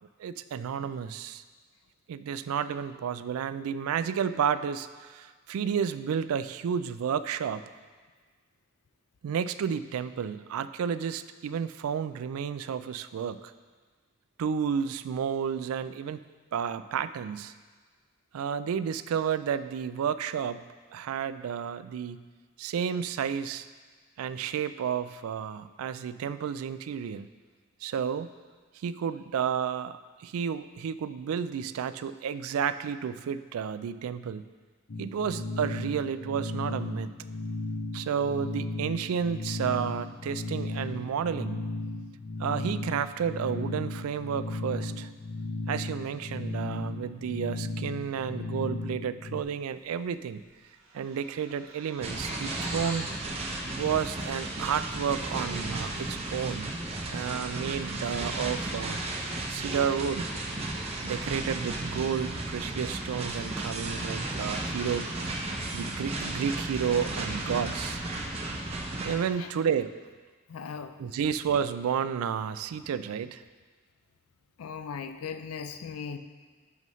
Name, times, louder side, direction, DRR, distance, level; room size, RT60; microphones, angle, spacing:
voice 1, 0.2-1.4 2.1-7.6 9.2-13.5 14.4-16.2 16.5-17.5 18.3-20.6 20.9-22.2 22.6-23.7 24.2-27.3 27.8-28.3 28.8-34.4 35.0-37.1 37.9-41.6 42.4-45.1 45.7-50.4 50.9-53.1 53.8-56.8 57.1-59.0 59.5-60.3 61.0-65.1 65.7-68.0 69.0-69.9 71.0-73.4, right 7 dB, 90° right, 14 dB, 0.3 m, -31 dB
sound 1, 34.9-49.4, left 2 dB, 45° left, 0.6 m, -35 dB
sound 2, 50.0-50.2 50.5-53.2, right 3 dB, 65° right, 1.4 m, -43 dB
sound 3, 52.0-69.2, right 2 dB, 30° right, 0.7 m, -34 dB
voice 2, 70.5-71.0 74.6-76.2, left 6 dB, 90° left, 9 dB, 0.4 m, -38 dB
11.0 x 5.4 x 3.1 m, 1.5 s
head